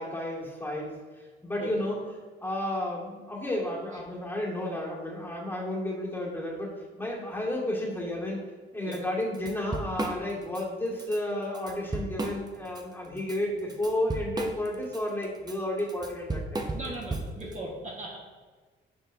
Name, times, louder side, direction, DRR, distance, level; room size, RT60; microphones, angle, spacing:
voice 1, 0.0-2.0 2.4-6.7 7.0-8.4 8.7-16.9, left 1 dB, 10° left, -4 dB, 2.1 m, -32 dB
Drum kit / Drum, 8.9-9.0 9.3-10.6 11.0-11.2 11.5-12.8 13.2-17.6, right 2 dB, 20° right, 0.7 m, -34 dB
voice 2, 16.7-18.2, right 2 dB, 35° right, -3 dB, 1.5 m, -38 dB
9.8 x 4.9 x 2.7 m, 1.4 s
cardioid pair, 90°, 20 cm